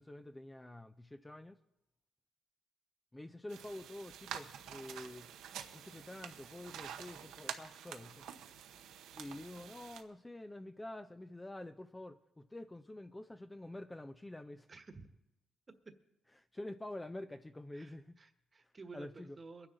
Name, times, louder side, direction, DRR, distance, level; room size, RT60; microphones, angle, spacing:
voice 1, 0.0-1.6 3.1-5.3 5.7-8.2 9.1-14.7 16.5-18.2 18.9-19.4, left 1 dB, 15° left, 9 dB, 0.5 m, -47 dB
sound 1, 3.5-10.0, right 9 dB, 85° right, 0.9 m, -48 dB
voice 2, 14.7-15.1 17.7-19.7, right 4 dB, 30° right, 8 dB, 1.3 m, -53 dB
22.5 x 9.8 x 3.9 m, 0.86 s
cardioid pair, 90°, 0 cm